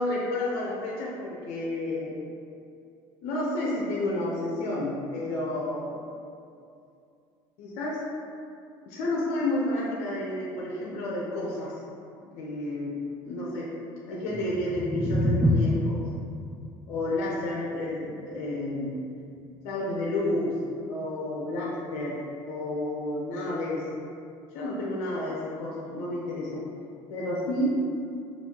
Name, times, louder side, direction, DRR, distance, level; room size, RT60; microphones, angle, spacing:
voice 1, 0.0-2.2 3.2-6.0 7.6-8.0 8.9-11.7 12.2-13.0 13.2-13.8 14.1-16.0 16.9-18.9 19.6-20.6 20.9-22.2 22.5-23.9 24.5-26.6 27.1-27.8, left 1 dB, 75° left, -5 dB, 0.7 m, -30 dB
sound 1, 14.2-20.4, left 1 dB, 5° right, 0.4 m, -30 dB
5.3 x 2.5 x 2.9 m, 2.5 s
supercardioid pair, 105°, 10 cm